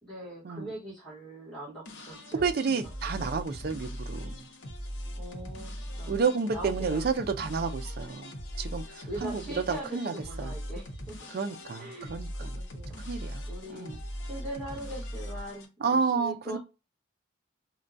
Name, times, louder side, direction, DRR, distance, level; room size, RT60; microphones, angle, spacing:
voice 1, 0.0-2.4 5.2-6.2 6.5-7.0 9.1-11.3 11.7-12.1 12.4-13.0 13.5-13.9 14.3-16.6, right 1 dB, 5° left, 1.1 m, -41 dB
sound 1, 1.9-15.7, equal, 65° left, 0.7 m, -40 dB
voice 2, 2.4-4.5 6.1-10.5 11.3-12.6 13.0-13.4 13.7-14.0 15.8-16.6, right 5 dB, 50° right, 0.4 m, -31 dB
4.3 x 2.2 x 2.5 m
head